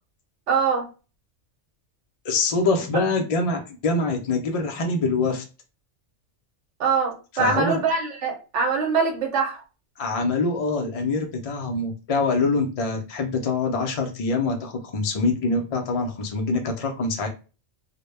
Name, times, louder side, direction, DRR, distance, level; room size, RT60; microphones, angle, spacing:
voice 1, 0.5-0.9 6.8-9.6, right 5 dB, 80° right, 1 dB, 0.9 m, -23 dB
voice 2, 2.2-5.4 7.3-7.8 10.0-17.3, left 3 dB, 70° left, 2 dB, 0.3 m, -24 dB
2.1 x 2.0 x 3.1 m, 0.33 s
omnidirectional pair, 1.2 m